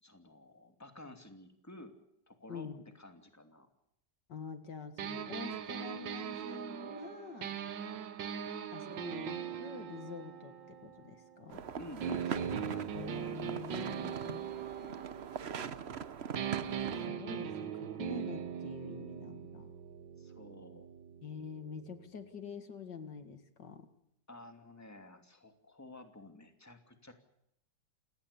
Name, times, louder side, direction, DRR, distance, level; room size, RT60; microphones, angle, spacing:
voice 1, 0.0-2.0 2.3-2.7 2.9-3.7 11.8-13.1 20.2-20.9 24.3-27.1, left 1 dB, 10° left, 6 dB, 2.7 m, -52 dB
voice 2, 2.5-2.9 4.3-7.6 8.7-11.7 12.9-14.6 17.0-19.7 21.2-23.9, left 5 dB, 75° left, 9 dB, 2.5 m, -46 dB
sound 1, 5.0-11.5 12.0-16.0 16.4-22.1, right 8 dB, 80° right, 1.9 m, -41 dB
sound 2, 11.5-17.1, right 7 dB, 45° right, 1.0 m, -42 dB
28.5 x 17.5 x 6.9 m, 0.80 s
omnidirectional pair, 1.9 m